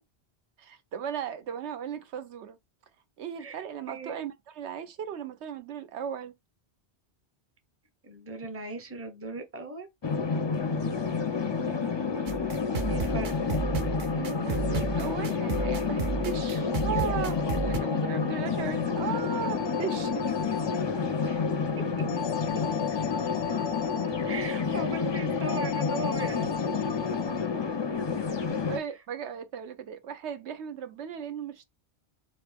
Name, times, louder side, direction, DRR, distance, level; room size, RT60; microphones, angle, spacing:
voice 1, 0.6-2.6 3.2-6.3 14.1-20.2 28.7-31.6, right 8 dB, 85° right, 1.0 m, -36 dB
voice 2, 3.4-4.3 8.0-9.9 12.9-13.3 21.2-21.5 24.3-26.5, right 2 dB, 15° right, 0.7 m, -38 dB
sound 1, 10.0-28.8, left 5 dB, 35° left, 0.4 m, -29 dB
sound 2, 12.3-17.8, right 6 dB, 55° right, 0.6 m, -33 dB
sound 3, 18.9-20.8 22.1-24.1 25.5-27.5, left 8 dB, 85° left, 0.9 m, -38 dB
4.3 x 2.6 x 3.3 m
omnidirectional pair, 1.1 m